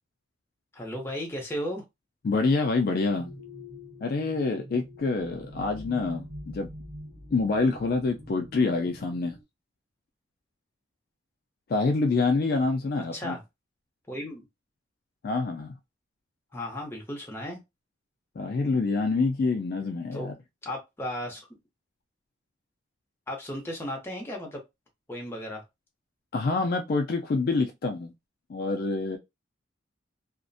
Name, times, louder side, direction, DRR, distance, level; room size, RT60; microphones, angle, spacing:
voice 1, 0.7-1.8 13.1-13.4 14.1-14.4 16.5-17.6 20.1-20.3 20.6-21.4 23.3-24.6 25.1-25.6, left 1 dB, 10° left, 0.7 m, -35 dB
voice 2, 2.2-3.3 4.0-6.7 7.3-9.4 11.7-13.4 15.2-15.8 18.4-20.4 26.3-28.1 28.5-29.2, left 3 dB, 50° left, 0.3 m, -26 dB
sound 1, 3.1-9.4, left 1 dB, 60° right, 0.9 m, -44 dB
2.4 x 2.1 x 2.5 m
head